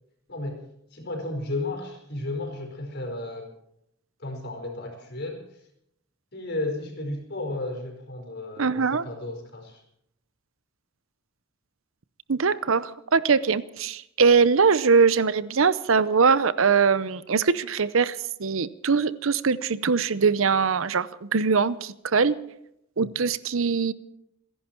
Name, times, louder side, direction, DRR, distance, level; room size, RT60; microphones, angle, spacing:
voice 1, 0.3-0.6 0.9-3.5 4.2-5.6 6.3-9.8 23.0-23.1, left 2 dB, 55° left, 4 dB, 4.8 m, -33 dB
voice 2, 8.6-9.0 12.3-22.4 23.0-23.9, right 5 dB, 75° right, 16 dB, 0.7 m, -22 dB
29.0 x 11.0 x 4.5 m, 0.76 s
head